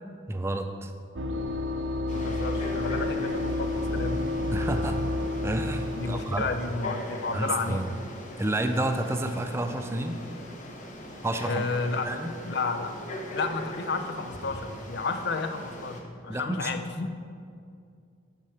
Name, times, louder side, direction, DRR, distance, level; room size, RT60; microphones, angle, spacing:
voice 1, 0.3-0.9 4.5-5.0 5.4-6.4 7.3-7.9 8.4-10.2 11.2-11.7 12.0-12.3 16.3-16.7, right 1 dB, 15° right, 6 dB, 0.4 m, -30 dB
sound 1, 1.2-6.3, left 2 dB, 70° right, 0.5 m, -30 dB
voice 2, 2.1-4.3 6.0-8.0 11.4-12.1 12.5-12.9 13.3-17.1, left 4 dB, 55° left, 7 dB, 0.5 m, -32 dB
Frog, 2.1-16.0, left 1 dB, 35° left, 0.9 m, -41 dB
9.5 x 4.7 x 5.8 m, 2.3 s
head